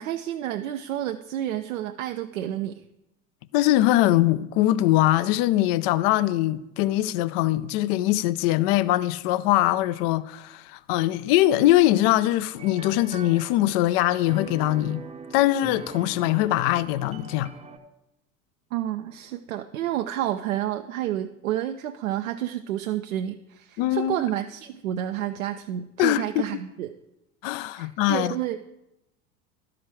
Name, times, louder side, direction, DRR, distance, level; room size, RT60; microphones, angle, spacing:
voice 1, 0.0-2.8 18.7-26.9 27.8-28.6, right 12 dB, 70° right, 0.5 m, -30 dB
voice 2, 3.5-15.0 15.3-17.5 23.8-24.2 26.0-26.4 27.4-28.3, left 15 dB, 45° left, 0.4 m, -22 dB
sound 1, 12.6-17.8, right 4 dB, 15° right, 0.7 m, -42 dB
12.5 x 4.9 x 4.5 m
figure-of-eight pair, 75°, 43 cm